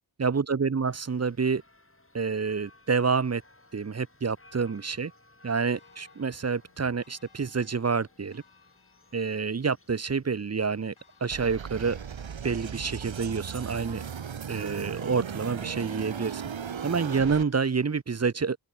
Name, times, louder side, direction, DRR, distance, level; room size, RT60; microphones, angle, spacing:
voice 1, 0.2-1.6 2.1-3.4 3.7-5.1 5.4-8.4 9.1-10.9 11.2-12.0 12.4-14.0 14.5-16.4 16.8-18.6, right 5 dB, 35° right, 0.7 m, -28 dB
sound 1, 0.8-18.0, left 2 dB, 25° left, 4.7 m, -60 dB
Church bell, 5.7-12.2, left 5 dB, 85° left, 4.5 m, -63 dB
sound 2, 11.3-17.4, right 7 dB, 70° right, 1.1 m, -37 dB
open air
wide cardioid pair, 50°, 48 cm